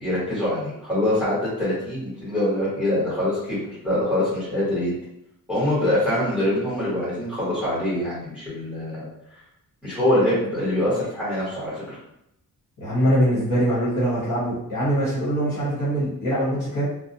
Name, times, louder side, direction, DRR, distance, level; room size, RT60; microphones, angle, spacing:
voice 1, 0.0-4.9 5.5-9.0 9.8-12.0, left 1 dB, 5° right, -10 dB, 1.3 m, -24 dB
voice 2, 12.8-16.9, equal, 55° left, -9 dB, 1.2 m, -23 dB
2.5 x 2.1 x 2.8 m, 0.79 s
wide cardioid pair, 130°, 36 cm